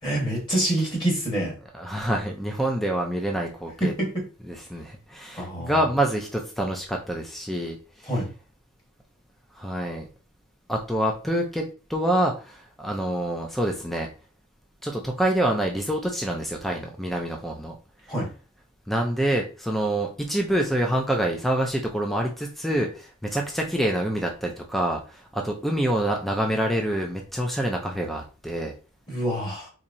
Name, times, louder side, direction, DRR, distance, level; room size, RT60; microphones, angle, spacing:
voice 1, 0.0-1.5 3.8-4.1 5.3-5.7 8.1-8.3 18.1-18.3 29.1-29.7, right 1 dB, 20° left, -3 dB, 1.3 m, -26 dB
voice 2, 1.7-3.9 4.4-8.1 9.5-10.1 10.7-14.1 14.8-17.8 18.9-28.7, right 1 dB, ahead, 1 dB, 0.4 m, -26 dB
4.2 x 2.8 x 2.6 m, 0.35 s
head